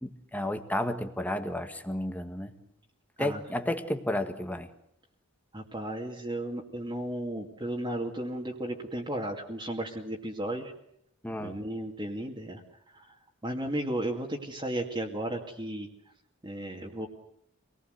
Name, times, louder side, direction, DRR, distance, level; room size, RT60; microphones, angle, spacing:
voice 1, 0.0-2.5 3.2-4.7 11.2-11.6, left 1 dB, 10° left, 8 dB, 1.7 m, -32 dB
voice 2, 5.5-10.7 11.4-12.6 13.4-15.9 16.4-17.1, right 1 dB, 20° right, -1 dB, 2.4 m, -34 dB
26.0 x 19.5 x 8.1 m, 0.75 s
head